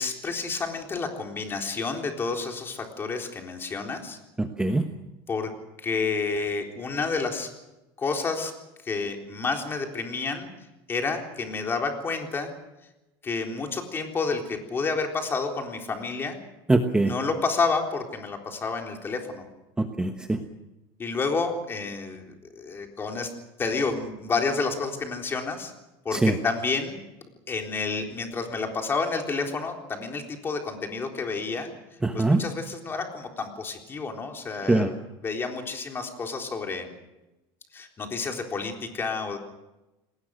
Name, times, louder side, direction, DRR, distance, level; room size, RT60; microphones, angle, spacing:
voice 1, 0.0-4.2 5.3-5.5 5.8-7.5 8.0-8.5 8.8-10.5 10.9-12.5 13.2-16.4 17.0-19.4 21.0-22.2 22.6-23.3 23.6-25.7 26.0-27.0 27.5-31.7 32.1-34.9 35.2-36.9 37.7-39.4, left 4 dB, 20° left, 3 dB, 3.8 m, -29 dB
voice 2, 4.4-4.9 16.7-17.1 19.8-20.4 26.1-26.4 32.0-32.4 34.7-34.9, right 2 dB, 10° right, 5 dB, 1.2 m, -22 dB
28.5 x 20.0 x 6.5 m, 0.99 s
cardioid pair, 150°, 11 cm